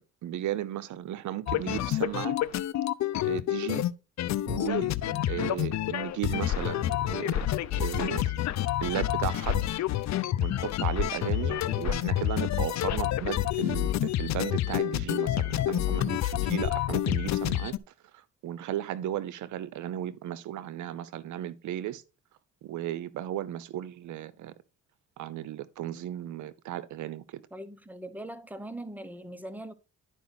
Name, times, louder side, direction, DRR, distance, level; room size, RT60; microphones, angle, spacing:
voice 1, 0.0-2.4 3.2-3.9 4.5-4.9 5.2-7.5 7.8-8.3 8.8-9.7 10.4-17.8 18.1-22.0 22.6-24.5 25.2-27.4, right 12 dB, 75° right, 0.7 m, -35 dB
sound 1, 1.5-3.9 4.2-17.8, left 13 dB, 65° left, 0.6 m, -28 dB
voice 2, 5.1-5.5 11.5-11.9 27.5-29.7, right 1 dB, 5° right, 1.1 m, -42 dB
11.0 x 5.1 x 4.0 m
cardioid pair, 90°, 30 cm